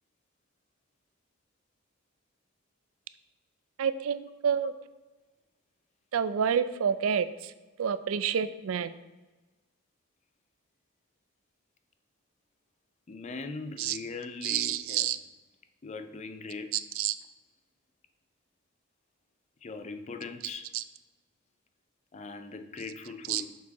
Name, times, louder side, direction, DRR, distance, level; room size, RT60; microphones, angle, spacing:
voice 1, 3.8-4.7 6.1-7.5 7.8-8.9 13.8-14.0 14.4-15.2 16.7-17.1 20.7-20.8 23.3-23.4, right 8 dB, 90° right, 14 dB, 0.4 m, -28 dB
voice 2, 13.1-15.1 15.8-16.7 19.6-20.7 22.1-23.5, left 4 dB, 35° left, 9 dB, 0.5 m, -40 dB
7.0 x 4.6 x 4.1 m, 1.2 s
head